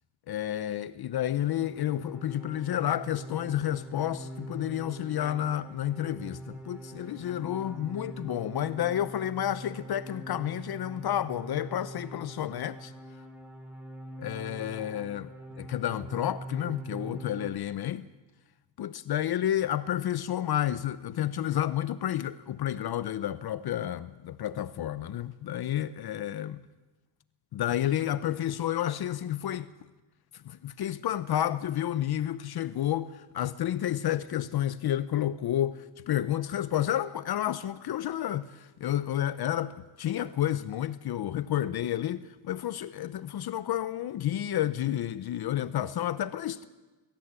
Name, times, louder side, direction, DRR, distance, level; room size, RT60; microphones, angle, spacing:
voice 1, 0.3-12.9 14.2-18.1 18.8-26.6 27.5-29.7 30.3-46.7, left 11 dB, 55° left, 0.8 m, -30 dB
sound 1, 1.2-17.5, right 1 dB, 5° right, 4.0 m, -43 dB
22.5 x 14.5 x 8.3 m
cardioid pair, 100°, 44 cm